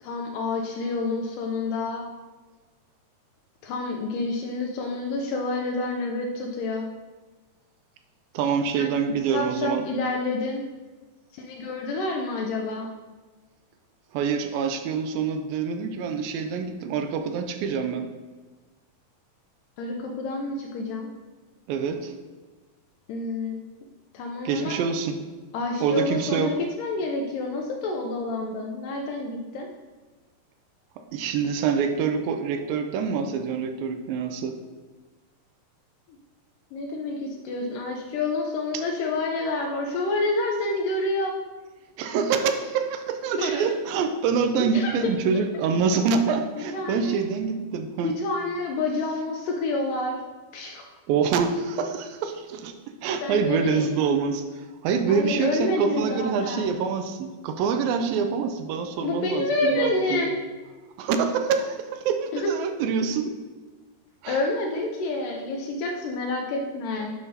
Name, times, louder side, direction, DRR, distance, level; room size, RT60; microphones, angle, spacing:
voice 1, 0.0-2.0 3.6-6.9 8.7-8.9 9.3-10.6 11.3-12.9 19.8-21.1 23.1-23.6 24.1-24.8 25.5-29.7 36.7-41.3 43.4-43.7 44.5-45.1 46.6-47.2 48.0-50.2 50.5-50.9 53.2-53.9 55.1-56.7 58.9-60.3 62.3-62.5 64.3-67.1, left 2 dB, 80° left, 1 dB, 2.1 m, -28 dB
voice 2, 8.3-9.9 14.1-18.1 21.7-22.1 24.5-25.2 25.8-26.5 31.1-34.6 38.7-38.8 42.0-48.1 51.1-52.7 53.0-60.3 61.0-63.3 64.2-64.4, right 6 dB, 80° right, 7 dB, 2.2 m, -26 dB
9.2 x 5.7 x 2.8 m, 1.3 s
omnidirectional pair, 4.2 m